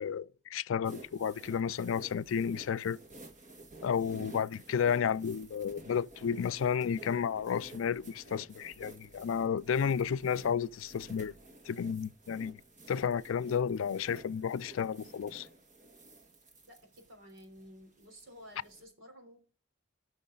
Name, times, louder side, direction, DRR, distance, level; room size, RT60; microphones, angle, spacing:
voice 1, 0.0-3.0 3.8-11.3 11.7-12.6 12.9-15.5, left 7 dB, 85° left, 0.4 m, -32 dB
sound 1, 0.8-18.8, right 2 dB, 40° right, 1.7 m, -53 dB
voice 2, 16.4-19.4, equal, 85° right, 3.7 m, -54 dB
17.0 x 6.4 x 3.8 m
head